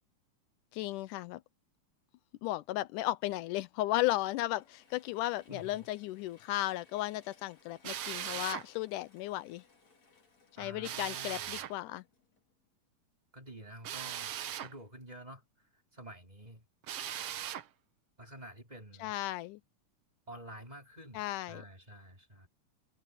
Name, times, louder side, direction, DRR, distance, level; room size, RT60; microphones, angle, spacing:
voice 1, 0.7-1.4 2.4-9.6 10.6-12.0 19.0-19.6 21.1-21.6, left 16 dB, 85° left, 2.1 m, -35 dB
Mechanisms / Drill, 4.2-12.8, left 4 dB, 55° left, 6.0 m, -66 dB
voice 2, 5.5-5.8 10.6-11.7 13.3-15.4 15.9-16.6 18.2-19.1 20.3-22.5, right 1 dB, 10° right, 4.5 m, -49 dB
Drill, 7.8-8.7 10.8-11.7 13.8-14.7 16.8-17.7, right 10 dB, 60° right, 1.7 m, -39 dB
omnidirectional pair, 3.6 m